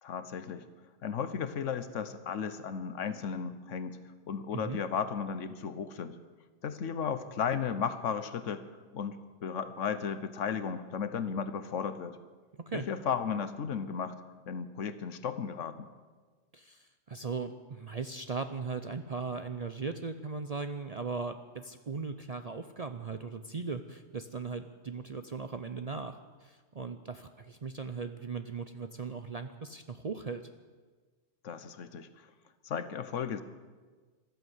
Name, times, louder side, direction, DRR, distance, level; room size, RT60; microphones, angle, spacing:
voice 1, 0.0-0.6 1.0-4.0 4.3-6.2 6.6-8.6 8.9-12.2 12.7-14.2 14.5-15.8 31.4-32.1 32.6-33.4, left 7 dB, 75° left, 12 dB, 1.2 m, -34 dB
voice 2, 16.5-30.4, right 4 dB, 45° right, 8 dB, 0.5 m, -38 dB
14.5 x 12.5 x 8.0 m, 1.4 s
omnidirectional pair, 1.3 m